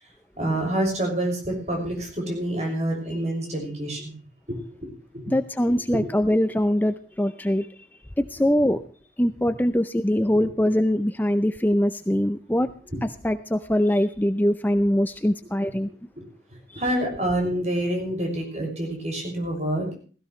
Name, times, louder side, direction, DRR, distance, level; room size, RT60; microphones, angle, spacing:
voice 1, 0.4-4.1 4.5-4.9 5.1-5.3 5.9-6.0 8.6-8.7 10.3-10.5 15.9-16.2 16.7-20.0, right 1 dB, 40° right, 2 dB, 6.3 m, -27 dB
voice 2, 5.3-7.7 8.2-8.8 9.2-12.7 13.2-15.9, left 1 dB, 10° left, 10 dB, 0.5 m, -22 dB
16.0 x 16.0 x 3.2 m, 0.41 s
head